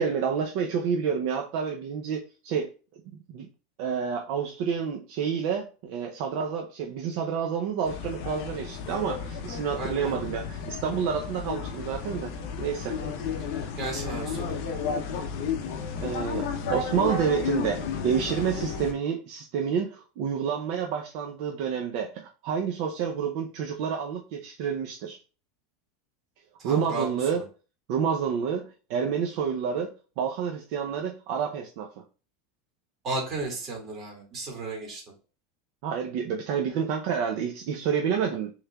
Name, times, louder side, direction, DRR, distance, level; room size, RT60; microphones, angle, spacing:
voice 1, 0.0-2.7 3.3-3.5 3.8-12.3 12.6-13.0 16.0-25.2 26.6-27.4 27.9-31.9 35.8-38.5, right 7 dB, 50° right, 2 dB, 0.5 m, -29 dB
sound 1, 7.8-18.9, left 6 dB, 55° left, 0.7 m, -33 dB
voice 2, 9.8-10.2 13.8-14.5 26.6-27.4 33.0-35.0, right 3 dB, 25° right, 0 dB, 2.1 m, -34 dB
6.5 x 3.2 x 2.3 m, 0.35 s
supercardioid pair, 170°, 0 cm